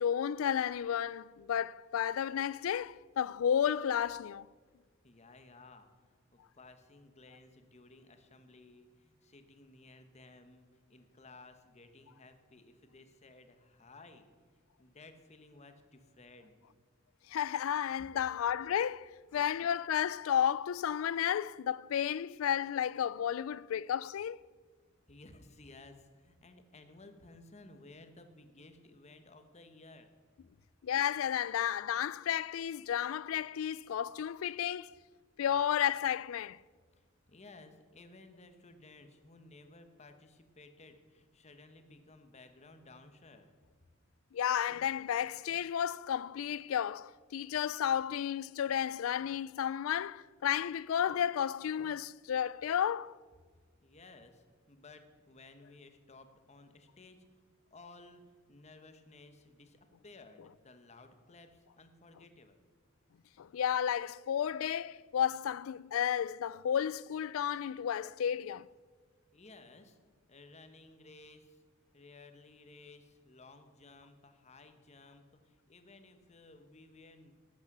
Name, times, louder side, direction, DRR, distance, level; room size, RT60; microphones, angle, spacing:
voice 1, 0.0-4.5 17.3-24.4 30.8-35.0 35.4-36.6 44.3-53.2 63.4-68.7, left 9 dB, 85° left, 0.3 m, -32 dB
voice 2, 5.0-5.9 6.3-14.3 14.8-16.6 19.5-19.6 25.1-30.1 37.0-43.5 53.8-57.2 57.7-62.6 69.3-70.0 70.3-71.6 71.9-77.3, left 2 dB, 35° left, 1.1 m, -56 dB
12.5 x 8.6 x 6.0 m
head